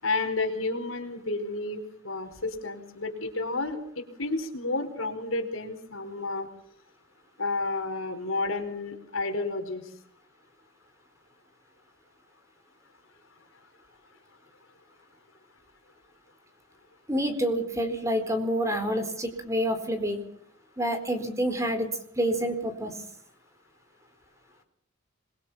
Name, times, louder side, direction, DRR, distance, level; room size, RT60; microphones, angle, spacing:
voice 1, 0.0-3.8 4.2-6.5 7.4-9.8, left 3 dB, 90° left, 5 dB, 4.7 m, -31 dB
voice 2, 17.1-20.2 20.8-21.9 22.2-22.9, equal, 15° right, 7 dB, 4.3 m, -28 dB
26.0 x 23.0 x 5.8 m, 0.65 s
head